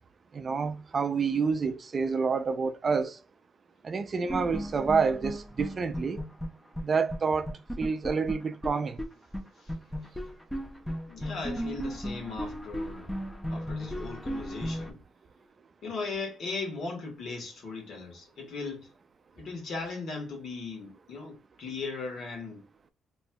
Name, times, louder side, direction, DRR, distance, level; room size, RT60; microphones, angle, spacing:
voice 1, 0.3-3.2 3.8-6.3 6.8-9.0, right 5 dB, 40° right, 0.4 m, -28 dB
sound 1, 4.3-6.8 7.1-7.2 7.5-9.1 9.3-9.4 9.7-14.9, equal, 5° left, 0.7 m, -35 dB
voice 2, 9.6-10.1 11.1-13.1 13.4-15.0 15.8-18.9 19.3-22.6, left 4 dB, 70° left, 1.6 m, -38 dB
4.3 x 3.1 x 2.2 m
cardioid pair, 90°, 0 cm